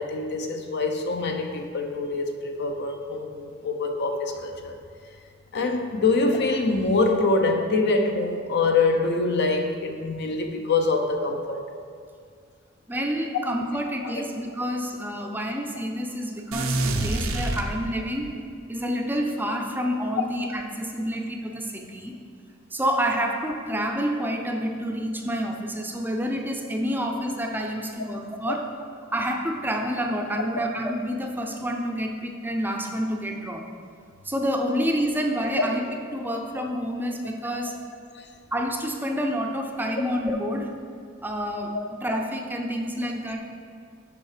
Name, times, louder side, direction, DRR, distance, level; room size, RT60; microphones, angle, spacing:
voice 1, 0.0-4.7 5.5-11.6 14.0-14.1 20.2-20.3 28.5-28.6 38.1-38.3, left 3 dB, 55° left, 5 dB, 0.6 m, -25 dB
voice 2, 12.9-18.4 18.7-22.2 22.7-28.7 29.1-33.6 34.2-35.9 36.1-37.8 38.5-40.7 41.2-41.8 42.0-43.4, equal, 10° right, 2 dB, 0.5 m, -28 dB
sound 1, 16.5-18.3, right 2 dB, 85° right, 0.7 m, -27 dB
7.0 x 5.7 x 4.9 m, 2.2 s
head